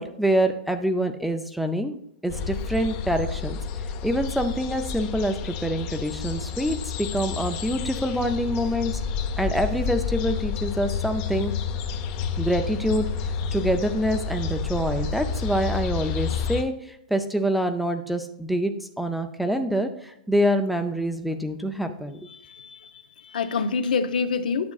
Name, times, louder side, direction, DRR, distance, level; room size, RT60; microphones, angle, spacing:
voice 1, 0.0-1.9 2.2-3.6 4.0-8.9 9.4-11.5 12.4-13.1 13.5-22.2, equal, ahead, 7 dB, 0.4 m, -26 dB
sound 1, 2.3-16.6, left 6 dB, 35° left, 0.7 m, -30 dB
voice 2, 22.4-22.9 23.2-24.7, left 5 dB, 75° left, 12 dB, 0.7 m, -26 dB
9.5 x 6.7 x 2.4 m, 0.73 s
hypercardioid pair, 155°, 5 cm